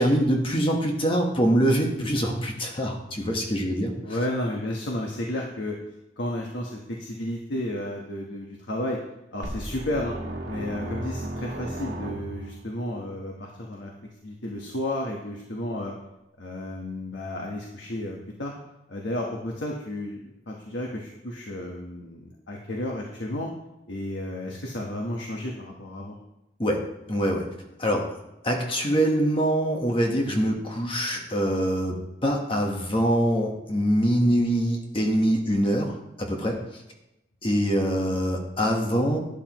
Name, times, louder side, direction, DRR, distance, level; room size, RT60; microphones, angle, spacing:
voice 1, 0.0-3.9 26.6-26.8 27.1-27.4 27.8-28.1 28.4-36.6 37.4-39.2, equal, 30° left, 1 dB, 1.3 m, -24 dB
voice 2, 4.0-5.7 6.2-9.0 9.3-10.1 10.5-13.9 14.2-15.9 16.4-18.5 18.9-23.5 23.9-26.2, left 1 dB, 80° left, 0 dB, 1.2 m, -32 dB
sound 1, 9.4-12.7, right 1 dB, 65° right, 1.8 m, -34 dB
12.0 x 9.9 x 3.0 m, 0.91 s
head